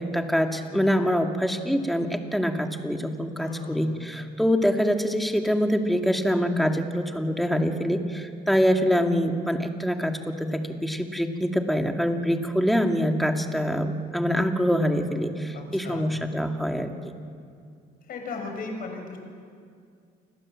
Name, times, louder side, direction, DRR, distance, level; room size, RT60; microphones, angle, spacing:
voice 1, 0.0-16.9, equal, ahead, 4 dB, 2.2 m, -25 dB
voice 2, 3.4-3.9 15.5-16.1 18.1-19.2, left 3 dB, 60° left, 3 dB, 6.4 m, -36 dB
29.5 x 20.5 x 7.6 m, 2.3 s
cardioid pair, 110°, 17 cm